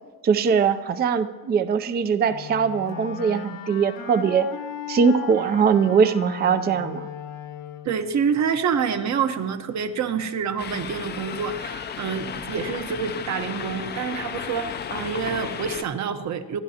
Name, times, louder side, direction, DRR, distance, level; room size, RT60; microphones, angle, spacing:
voice 1, 0.2-4.5 4.9-7.1, right 6 dB, 25° right, 11 dB, 0.5 m, -21 dB
Wind instrument woodwind instrument, 2.3-8.0, left 9 dB, 70° left, 1.3 m, -37 dB
voice 2, 7.8-16.6, right 6 dB, 50° right, 8 dB, 1.1 m, -27 dB
sound 1, 10.6-15.8, left 7 dB, 30° left, 0.5 m, -34 dB
27.5 x 11.5 x 2.9 m, 1.4 s
cardioid pair, 170°, 36 cm